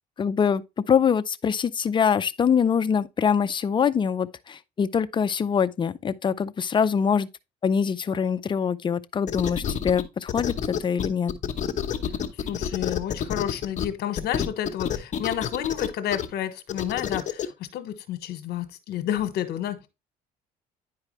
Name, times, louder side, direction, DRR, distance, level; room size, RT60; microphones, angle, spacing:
voice 1, 0.2-0.6 0.9-7.3 7.6-11.3, left 7 dB, 30° left, 0.5 m, -24 dB
sound 1, 9.3-10.0 10.3-13.9 14.2-16.3 16.7-17.5, left 9 dB, 45° left, 1.0 m, -28 dB
voice 2, 12.4-19.8, left 11 dB, 70° left, 1.2 m, -30 dB
9.9 x 4.8 x 3.1 m
cardioid pair, 110°, 17 cm